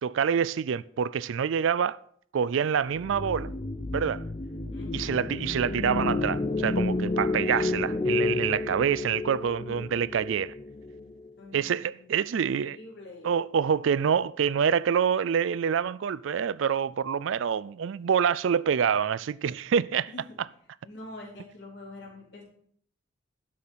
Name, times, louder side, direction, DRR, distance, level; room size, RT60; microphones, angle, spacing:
voice 1, 0.0-2.0 2.3-3.5 3.9-4.2 4.9-10.5 11.5-12.8 13.2-20.1, right 7 dB, 70° right, 0.4 m, -26 dB
sound 1, 2.9-11.3, left 3 dB, 25° left, 0.6 m, -31 dB
voice 2, 4.7-5.3 11.4-13.4 20.1-20.4 20.8-22.4, left 2 dB, 55° left, 4.0 m, -46 dB
11.5 x 6.5 x 5.5 m
head